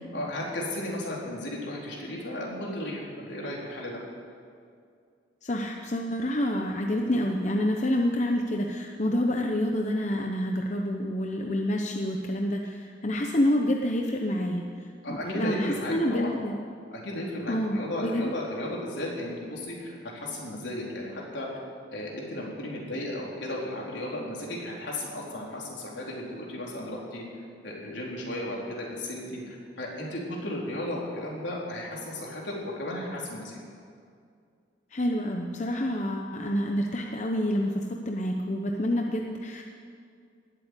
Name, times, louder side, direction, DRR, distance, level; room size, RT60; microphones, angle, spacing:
voice 1, 0.1-4.0 15.0-16.3 16.9-21.5 21.9-27.2 27.6-33.6, left 1 dB, 80° left, -3 dB, 4.0 m, -34 dB
voice 2, 5.4-14.7 15.1-16.5 17.5-18.3 34.9-39.6, left 1 dB, 40° left, 2 dB, 0.9 m, -28 dB
20.0 x 8.1 x 8.4 m, 2.3 s
head